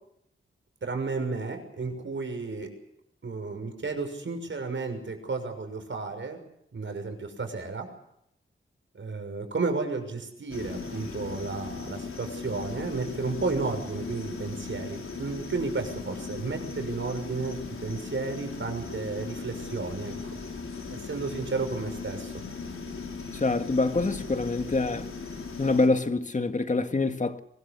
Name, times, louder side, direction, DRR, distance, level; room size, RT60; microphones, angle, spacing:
voice 1, 0.8-2.7 3.2-6.4 6.7-7.9 9.0-20.1 20.9-22.3, right 4 dB, 65° right, 6.4 m, -32 dB
sound 1, 10.5-25.9, left 4 dB, 85° left, 4.9 m, -38 dB
voice 2, 23.3-25.1 25.6-27.4, left 3 dB, 35° left, 1.8 m, -25 dB
24.0 x 21.5 x 6.9 m
wide cardioid pair, 100°, 21 cm